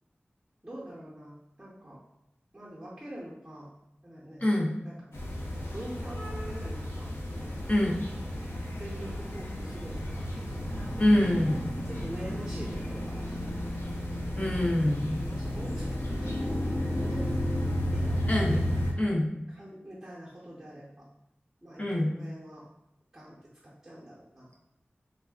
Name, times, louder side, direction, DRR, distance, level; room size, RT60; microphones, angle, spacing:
voice 1, 0.6-2.0 2.5-3.7 4.0-4.5 4.8-5.0 5.7-7.6 8.7-10.3 10.9-11.0 11.8-13.6 15.3-16.6 17.0-17.6 17.9-18.6 19.5-21.0 21.6-22.7 23.1-23.4 23.6-24.5, right 1 dB, 15° right, -7 dB, 0.8 m, -45 dB
voice 2, 4.4-4.7 7.7-8.0 11.0-11.6 14.3-15.2 18.3-18.6 19.0-19.3 21.8-22.1, left 1 dB, 35° left, -2 dB, 0.6 m, -25 dB
sound 1, 5.1-18.9, left 1 dB, 85° left, 0.6 m, -33 dB
3.3 x 2.3 x 2.3 m, 0.87 s
wide cardioid pair, 60°, 4 cm